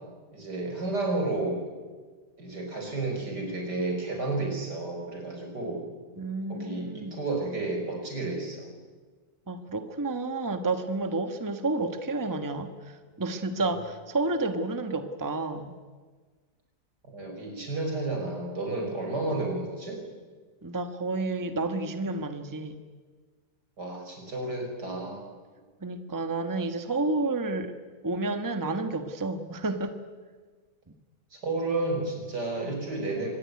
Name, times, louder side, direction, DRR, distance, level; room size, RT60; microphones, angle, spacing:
voice 1, 0.3-1.6 2.4-5.8 6.5-8.7 13.6-13.7 17.1-20.0 23.8-25.2 31.3-33.4, right 2 dB, 80° right, 2 dB, 6.7 m, -31 dB
voice 2, 6.2-7.1 9.5-15.7 20.6-22.8 25.8-27.7 28.0-30.0, right 2 dB, 10° right, 8 dB, 1.3 m, -30 dB
25.0 x 20.0 x 9.7 m, 1.5 s
omnidirectional pair, 1.8 m